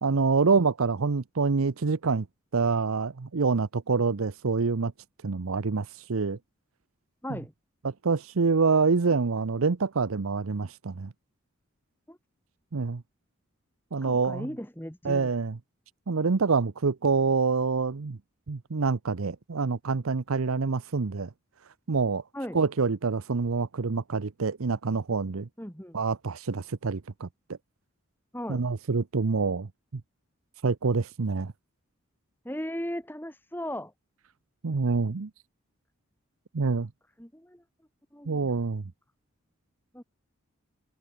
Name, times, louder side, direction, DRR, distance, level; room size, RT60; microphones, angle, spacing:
voice 1, 0.0-2.3 2.5-4.9 5.2-6.4 7.8-11.1 12.7-13.0 13.9-14.5 15.0-15.6 16.1-18.2 18.5-21.3 21.9-22.2 22.5-25.5 25.9-27.3 28.5-30.0 30.6-31.5 34.6-35.3 36.5-36.9 38.3-38.8, right 4 dB, 85° right, 0.7 m, -26 dB
voice 2, 14.0-15.3 22.3-22.6 25.6-26.0 28.3-28.7 32.4-33.9 37.2-37.6 38.1-38.5 39.9-40.0, equal, 10° left, 3.2 m, -37 dB
head